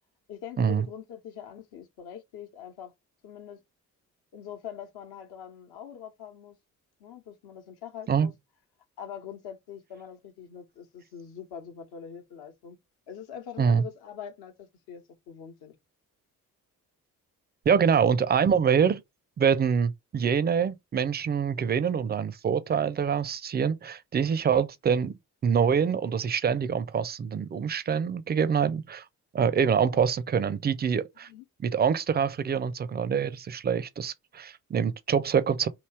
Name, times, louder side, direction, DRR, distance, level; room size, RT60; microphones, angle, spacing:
voice 1, 0.3-2.9 3.2-3.6 4.3-6.6 7.0-8.3 9.0-12.8 13.1-15.7 31.3-31.4, left 8 dB, 55° left, 1.1 m, -43 dB
voice 2, 17.7-19.0 19.4-25.1 25.4-29.0 29.3-31.3 31.6-35.7, right 7 dB, 20° right, 0.5 m, -25 dB
3.1 x 2.9 x 4.5 m
figure-of-eight pair, 40°, 45 cm